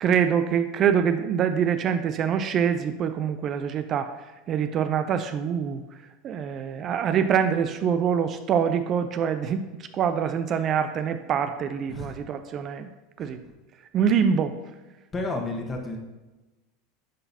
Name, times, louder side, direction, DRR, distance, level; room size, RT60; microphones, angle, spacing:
voice 1, 0.0-4.1 4.5-5.8 6.2-9.7 9.9-12.9 13.2-13.4 13.9-14.6, right 7 dB, 40° right, 9 dB, 0.4 m, -25 dB
voice 2, 11.9-12.2 13.2-13.5 15.1-16.0, left 2 dB, 25° left, 2 dB, 1.4 m, -32 dB
10.0 x 3.9 x 2.7 m, 1.1 s
hypercardioid pair, 95°, 0 cm